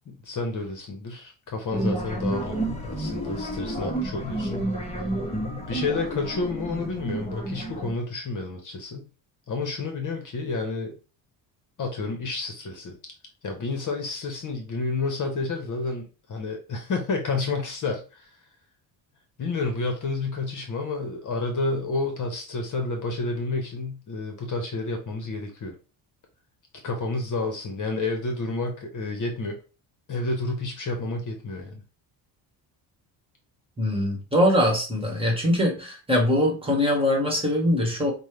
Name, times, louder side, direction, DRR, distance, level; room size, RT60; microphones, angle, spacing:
voice 1, 0.0-4.6 5.7-9.0 9.5-11.0 11.8-13.0 13.4-18.3 19.4-25.7 26.8-29.6 30.1-31.8, left 3 dB, 45° left, 4 dB, 1.0 m, -30 dB
sound 1, 1.7-7.9, right 1 dB, 15° left, 1.0 m, -30 dB
voice 2, 33.8-38.1, left 1 dB, 10° right, 0 dB, 1.5 m, -22 dB
5.2 x 2.3 x 3.3 m, 0.33 s
cardioid pair, 110°, 45 cm